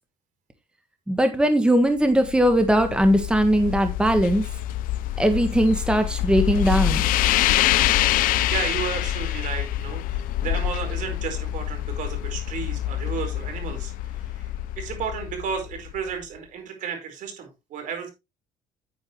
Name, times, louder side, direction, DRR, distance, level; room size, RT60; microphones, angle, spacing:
voice 1, 1.1-4.4 5.2-7.0, equal, 5° right, 7 dB, 1.4 m, -20 dB
sound 1, 2.0-16.2, left 13 dB, 75° left, 0.6 m, -26 dB
voice 2, 7.6-18.1, right 6 dB, 65° right, 5 dB, 4.6 m, -33 dB
9.6 x 9.2 x 3.1 m, 0.24 s
cardioid pair, 105°, 14 cm